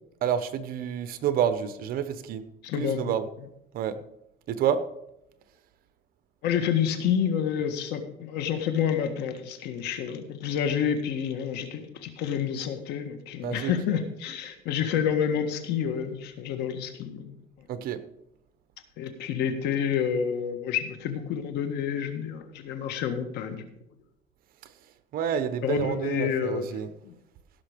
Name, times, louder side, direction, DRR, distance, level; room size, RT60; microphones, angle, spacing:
voice 1, 0.2-2.4 2.8-3.3 3.7-4.0 4.5-4.8 13.4-13.7 17.7-18.0 25.1-26.9, right 9 dB, 60° right, 12 dB, 1.0 m, -28 dB
voice 2, 2.6-3.1 6.4-17.4 19.0-23.6 25.6-26.7 27.0-27.1, left 8 dB, 80° left, 7 dB, 1.7 m, -29 dB
17.0 x 5.9 x 5.1 m, 0.83 s
cardioid pair, 130°, 17 cm